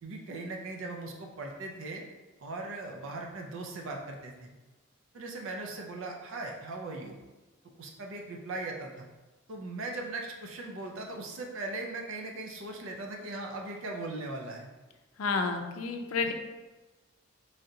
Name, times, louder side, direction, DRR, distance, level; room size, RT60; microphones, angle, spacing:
voice 1, 0.0-2.0 2.4-4.5 5.1-7.2 7.8-9.1 9.5-14.7 16.2-16.3, right 2 dB, 65° right, 1 dB, 0.5 m, -39 dB
voice 2, 15.2-16.3, left 4 dB, 80° left, 5 dB, 0.4 m, -30 dB
3.7 x 3.2 x 2.7 m, 1.2 s
head